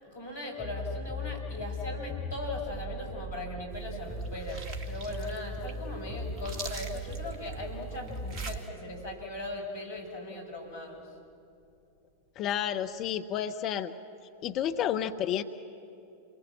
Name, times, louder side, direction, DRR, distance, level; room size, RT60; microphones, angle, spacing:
voice 1, 0.0-11.1, left 2 dB, 65° left, 1 dB, 6.3 m, -39 dB
sound 1, 0.6-8.6, equal, ahead, 1.8 m, -38 dB
sound 2, 3.7-8.7, right 3 dB, 35° right, 2.2 m, -44 dB
voice 2, 12.4-13.9 14.4-15.4, left 10 dB, 35° left, 8 dB, 0.8 m, -30 dB
28.5 x 22.5 x 7.6 m, 2.6 s
figure-of-eight pair, 90°, 0 cm